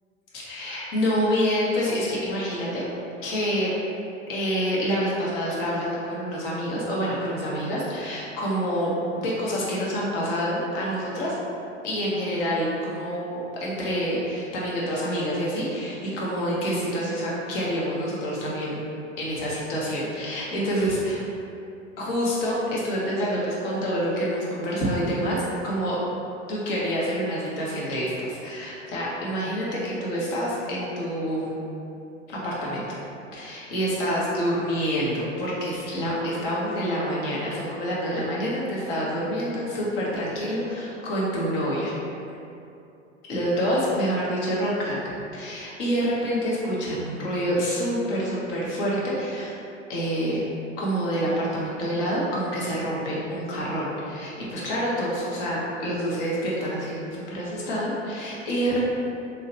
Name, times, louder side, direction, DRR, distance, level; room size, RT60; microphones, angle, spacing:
voice 1, 0.3-2.8 3.2-3.7 4.3-11.3 11.8-18.8 19.2-21.2 22.0-26.0 26.5-31.7 32.3-33.0 33.3-41.9 43.3-45.0 45.3-49.5 49.9-50.4 50.8-58.9, equal, 50° left, -6 dB, 0.9 m, -27 dB
2.9 x 2.4 x 2.9 m, 2.7 s
figure-of-eight pair, 90°, 38 cm